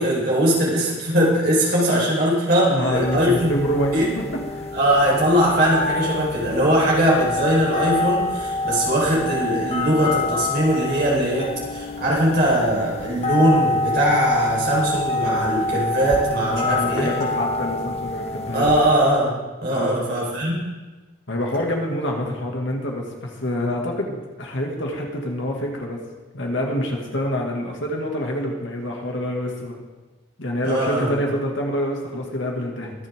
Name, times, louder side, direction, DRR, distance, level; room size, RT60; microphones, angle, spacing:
voice 1, 0.0-3.5 3.9-4.1 4.7-17.1 18.5-19.3 19.6-20.7 30.6-31.1, right 1 dB, 50° right, -5 dB, 4.7 m, -20 dB
voice 2, 2.6-4.1 4.5-4.7 16.4-18.7 19.7-20.0 21.3-26.0 26.3-29.8 30.4-32.9, equal, 70° left, 0 dB, 2.3 m, -26 dB
sound 1, 2.9-18.9, left 2 dB, 30° left, 0.8 m, -27 dB
23.5 x 7.9 x 3.8 m, 1.2 s
head